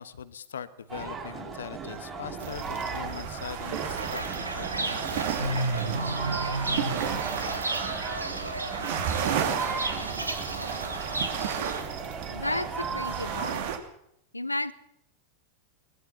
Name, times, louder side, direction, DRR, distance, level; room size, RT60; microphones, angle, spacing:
voice 1, 0.0-5.4, left 8 dB, 65° left, 14 dB, 1.3 m, -41 dB
sound 1, 0.9-13.5, right 5 dB, 25° right, 5.9 m, -37 dB
sound 2, 2.4-13.8, right 8 dB, 50° right, 2.9 m, -34 dB
Fowl / Bird, 4.0-11.8, right 2 dB, 80° right, 2.2 m, -32 dB
voice 2, 12.3-13.6 14.3-14.7, left 1 dB, 85° left, 16 dB, 1.0 m, -32 dB
23.0 x 20.0 x 5.8 m, 0.74 s
figure-of-eight pair, 90°, 0 cm